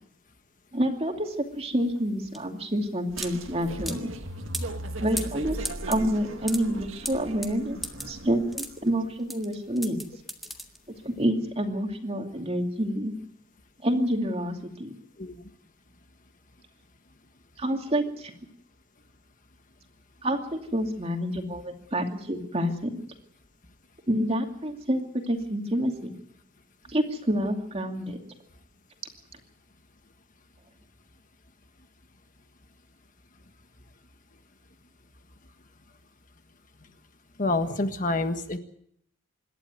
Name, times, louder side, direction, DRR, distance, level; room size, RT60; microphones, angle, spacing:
voice 1, 0.7-4.1 5.0-5.6 5.9-7.8 8.1-10.0 11.0-13.1 13.8-14.9 17.6-18.3 20.2-22.9 24.1-25.0 25.3-26.1 26.9-28.2, equal, 30° right, 4 dB, 2.5 m, -28 dB
sound 1, 1.3-11.2, equal, ahead, 1.7 m, -39 dB
sound 2, 3.1-8.7, right 1 dB, 65° right, 1.8 m, -37 dB
voice 2, 37.4-38.6, left 2 dB, 40° left, 8 dB, 1.5 m, -27 dB
26.5 x 12.0 x 9.2 m, 0.69 s
head